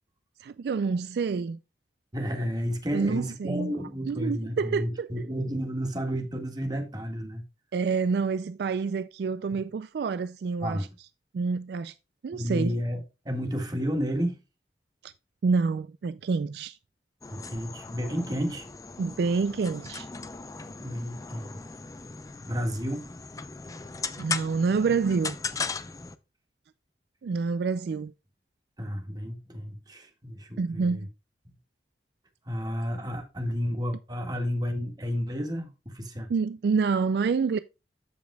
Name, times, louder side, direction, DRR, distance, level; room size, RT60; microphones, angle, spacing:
voice 1, 0.4-1.6 2.9-3.7 4.1-5.3 7.7-10.9 11.3-11.9 12.2-12.8 15.0-15.1 15.4-16.8 19.0-20.1 24.2-25.4 27.2-28.1 30.6-31.1 36.3-37.6, right 5 dB, 65° right, 0.3 m, -27 dB
voice 2, 2.1-7.4 10.6-10.9 12.3-14.4 17.3-18.7 20.8-21.6 22.4-23.1 28.8-31.1 32.5-36.3, equal, 25° right, 1.7 m, -31 dB
sound 1, 17.2-26.2, left 4 dB, 20° left, 0.5 m, -38 dB
14.0 x 5.2 x 2.2 m
head